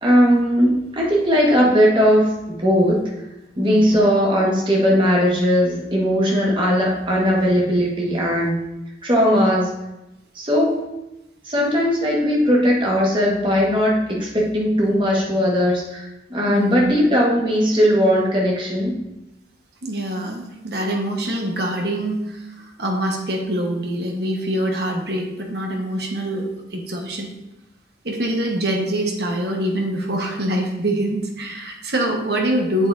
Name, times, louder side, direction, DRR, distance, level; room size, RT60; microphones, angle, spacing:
voice 1, 0.0-3.0 3.6-8.6 9.0-9.7 10.3-10.8 11.4-19.0, equal, 30° right, -3 dB, 1.5 m, -18 dB
voice 2, 3.7-4.0 16.5-16.9 19.8-27.3 28.0-32.9, right 1 dB, 70° right, 1 dB, 1.2 m, -24 dB
7.7 x 7.4 x 2.6 m, 0.94 s
head